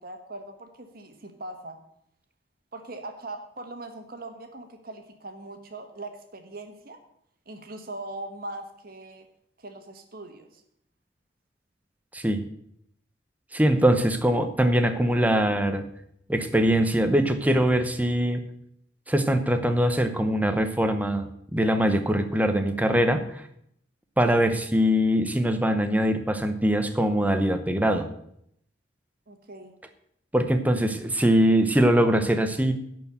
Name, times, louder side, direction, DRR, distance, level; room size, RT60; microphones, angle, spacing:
voice 1, 0.0-1.8 2.7-7.0 7.5-9.3 9.6-10.6 29.3-29.7, right 2 dB, 50° right, 5 dB, 1.4 m, -40 dB
voice 2, 13.5-15.8 16.3-18.4 19.1-23.4 24.2-28.1 30.3-32.7, equal, 10° right, 8 dB, 0.8 m, -22 dB
11.0 x 4.7 x 8.1 m, 0.73 s
head